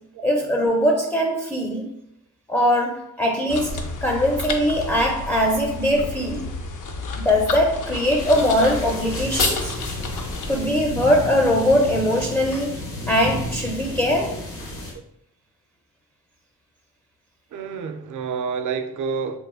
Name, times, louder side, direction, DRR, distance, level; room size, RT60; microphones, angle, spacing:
voice 1, 0.2-1.9 2.5-6.5 7.2-9.7 10.5-14.4, equal, 5° left, 0.4 m, -21 dB
sound 1, 3.5-10.6, left 3 dB, 55° left, 0.5 m, -31 dB
sound 2, 8.2-14.9, left 1 dB, 75° left, 1.0 m, -31 dB
voice 2, 17.5-19.4, right 5 dB, 55° right, 0.5 m, -29 dB
3.0 x 2.3 x 2.3 m
supercardioid pair, 50°, 37 cm